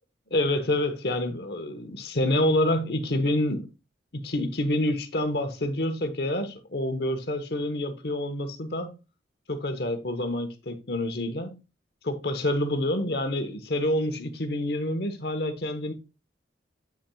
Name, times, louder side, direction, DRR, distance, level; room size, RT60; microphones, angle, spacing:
voice 1, 0.3-3.7 4.1-9.0 9.5-11.5 12.0-15.9, left 1 dB, 60° left, 1.0 m, -27 dB
8.7 x 6.0 x 2.3 m
head